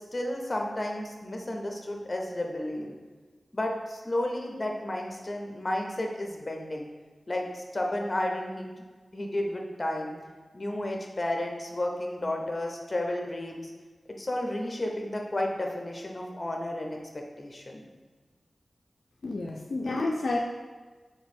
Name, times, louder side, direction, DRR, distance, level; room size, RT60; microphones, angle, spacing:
voice 1, 0.0-3.0 3.5-6.9 7.3-8.7 9.1-10.2 10.5-13.7 14.1-17.8, left 1 dB, 35° left, 1 dB, 0.7 m, -32 dB
voice 2, 19.2-20.4, left 2 dB, 70° left, 0 dB, 0.4 m, -29 dB
3.7 x 3.0 x 4.2 m, 1.4 s
cardioid pair, 55°, 0 cm